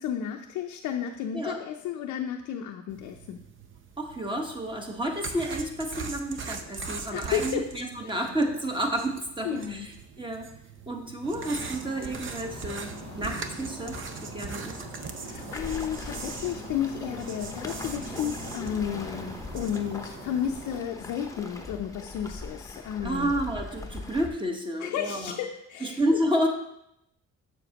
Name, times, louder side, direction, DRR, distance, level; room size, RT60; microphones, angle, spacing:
voice 1, 0.0-3.4 7.1-7.6 8.0-8.1 9.4-9.9 14.4-14.6 15.2-23.3 24.8-26.0, left 9 dB, 85° left, 2 dB, 0.6 m, -32 dB
sound 1, 2.9-19.8, right 5 dB, 40° right, 0.7 m, -41 dB
voice 2, 4.0-10.5 10.9-14.8 23.0-25.4 25.8-26.5, right 1 dB, 15° right, 2 dB, 1.2 m, -30 dB
sound 2, 11.2-20.8, equal, 60° right, 2.5 m, -42 dB
Waves surf, 15.5-24.3, left 2 dB, 10° left, 0.8 m, -41 dB
7.0 x 6.9 x 2.9 m, 0.79 s
cardioid pair, 90°, 30 cm